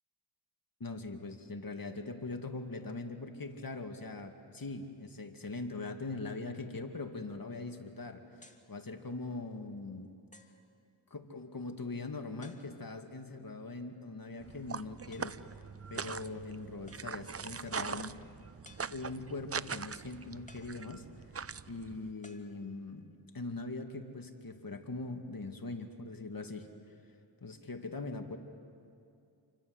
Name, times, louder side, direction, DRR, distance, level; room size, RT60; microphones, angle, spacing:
voice 1, 0.8-10.1 11.1-15.4 15.9-18.2 18.9-21.1 21.7-26.7 27.4-28.4, left 3 dB, 50° left, 5 dB, 2.5 m, -41 dB
sound 1, 8.4-8.7 9.5-9.6 10.3-10.7 12.4-13.0 15.1-15.5 16.9-17.4 18.6-19.3 20.5-21.3 22.2-23.1, left 2 dB, 15° left, 2.6 m, -60 dB
sound 2, 14.4-22.1, right 6 dB, 30° right, 0.7 m, -42 dB
29.0 x 24.5 x 8.1 m, 2.5 s
cardioid pair, 45°, 45 cm